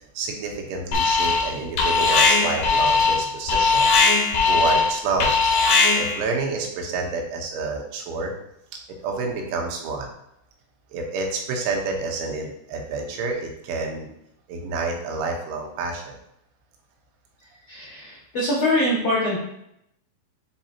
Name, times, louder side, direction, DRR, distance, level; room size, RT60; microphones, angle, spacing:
voice 1, 0.1-5.5 6.0-8.3 9.0-10.1 10.9-14.1 14.5-16.1, right 4 dB, 80° right, 2 dB, 3.4 m, -29 dB
Alarm, 0.9-1.5 1.8-6.2, left 4 dB, 60° left, 2.4 m, -19 dB
voice 2, 17.7-19.4, left 1 dB, 80° left, -6 dB, 1.4 m, -23 dB
10.0 x 4.0 x 2.8 m, 0.78 s
omnidirectional pair, 5.6 m